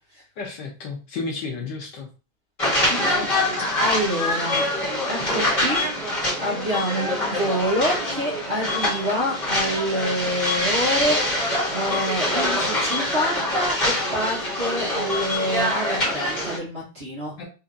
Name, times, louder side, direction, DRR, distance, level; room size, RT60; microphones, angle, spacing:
voice 1, 0.4-2.1 17.4-17.5, left 4 dB, 65° left, 0 dB, 1.3 m, -32 dB
sound 1, 2.6-16.6, left 1 dB, 25° left, 1.7 m, -24 dB
voice 2, 2.9-3.3 3.8-4.7 5.0-5.8 6.4-11.2 11.7-17.3, equal, 35° right, -5 dB, 1.1 m, -27 dB
4.5 x 2.8 x 2.5 m, 0.33 s
omnidirectional pair, 2.2 m